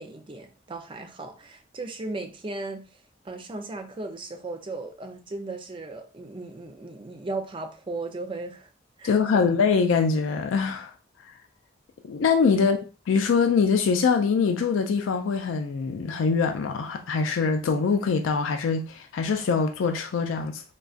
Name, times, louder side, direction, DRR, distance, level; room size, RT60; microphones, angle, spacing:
voice 1, 0.0-2.8 3.2-8.7 9.0-9.5 12.6-12.7, right 2 dB, 25° right, 0.4 m, -36 dB
voice 2, 9.0-10.9 12.1-12.8 13.1-20.6, left 5 dB, 85° left, 0.4 m, -23 dB
3.8 x 2.3 x 2.4 m
head